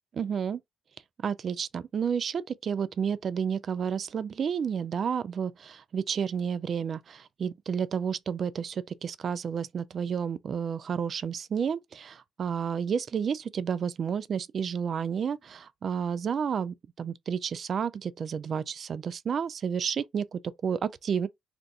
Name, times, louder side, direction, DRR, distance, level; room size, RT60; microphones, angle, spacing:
voice 1, 0.1-0.6 1.2-21.3, right 7 dB, 50° right, 0.3 m, -31 dB
2.5 x 2.3 x 3.8 m
cardioid pair, 90°, 0 cm